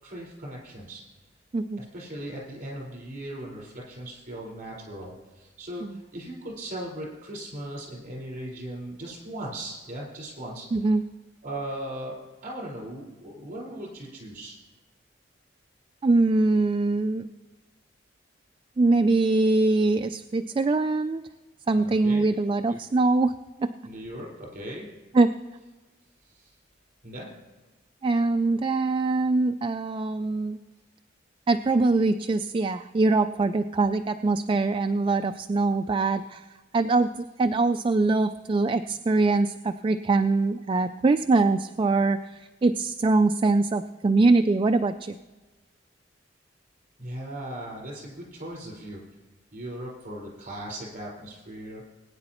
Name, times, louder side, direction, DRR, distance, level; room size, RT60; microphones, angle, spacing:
voice 1, 0.0-1.0 1.8-10.7 11.4-14.6 21.7-22.2 22.7-22.8 23.8-24.9 26.3-26.5 27.0-27.3 47.0-49.0 49.5-51.8, right 1 dB, 45° right, -4 dB, 4.6 m, -38 dB
voice 2, 10.7-11.0 16.0-17.3 18.8-21.2 21.7-23.3 23.6-23.7 25.1-25.3 28.0-30.6 31.5-36.5 36.7-45.2, right 3 dB, 25° right, 8 dB, 0.3 m, -23 dB
20.5 x 9.5 x 3.0 m, 1.2 s
head